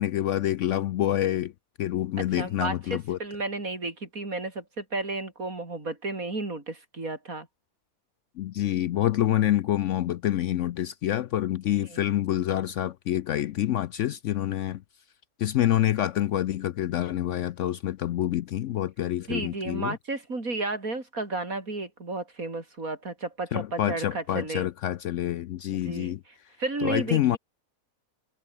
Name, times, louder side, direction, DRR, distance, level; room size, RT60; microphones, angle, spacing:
voice 1, 0.0-1.5 1.8-3.2 8.4-14.8 15.4-20.0 23.5-26.2 26.8-27.4, left 12 dB, 65° left, 0.8 m, -27 dB
voice 2, 2.4-7.5 11.9-12.0 19.3-24.7 25.7-26.2 26.6-27.4, right 2 dB, 65° right, 5.0 m, -33 dB
omnidirectional pair, 1.6 m